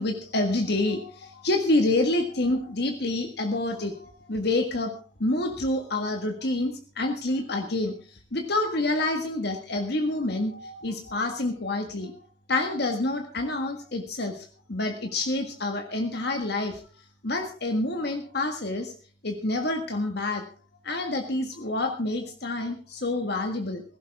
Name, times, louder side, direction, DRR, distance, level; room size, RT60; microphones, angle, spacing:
voice 1, 0.0-4.9 5.2-7.9 8.3-12.2 12.5-16.8 17.2-18.9 19.2-20.4 20.8-23.8, left 2 dB, 60° left, 4 dB, 1.7 m, -27 dB
16.5 x 16.0 x 3.6 m, 0.38 s
head